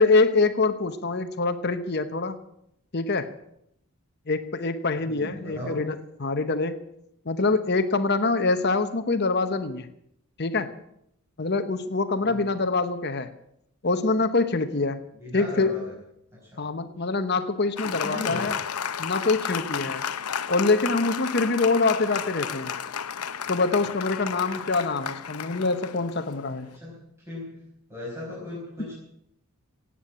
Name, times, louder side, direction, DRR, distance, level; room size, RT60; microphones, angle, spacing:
voice 1, 0.0-2.4 2.9-3.4 4.3-6.8 7.3-9.9 10.4-10.7 11.4-13.3 13.8-15.0 15.3-15.9 16.6-18.5 19.0-20.1 20.5-22.8 23.5-26.7, left 3 dB, 45° left, 9 dB, 1.0 m, -25 dB
voice 2, 5.0-5.8 12.2-12.4 15.1-16.0 16.3-16.6 17.9-18.6 26.6-27.6 27.9-28.9, left 1 dB, 10° right, -6 dB, 5.2 m, -37 dB
Applause, 17.8-26.8, left 7 dB, 85° left, 0.8 m, -33 dB
17.5 x 8.6 x 8.5 m, 0.76 s
head